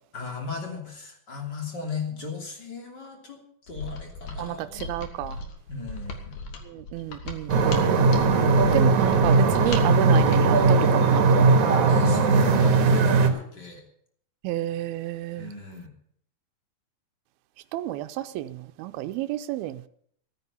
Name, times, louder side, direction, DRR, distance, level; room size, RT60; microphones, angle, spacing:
voice 1, 0.1-3.4 3.7-4.9 5.7-6.5 11.9-13.8 15.4-15.9, left 3 dB, 30° left, 3.2 m, -36 dB
Mechanisms, 3.7-10.9, left 3 dB, 60° left, 3.0 m, -38 dB
voice 2, 4.4-5.4 6.7-7.8 8.7-11.4 14.4-15.5 17.7-19.9, right 14 dB, 85° right, 2.6 m, -30 dB
sound 1, 7.5-13.3, right 4 dB, 60° right, 2.8 m, -19 dB
15.5 x 9.6 x 7.1 m
omnidirectional pair, 4.3 m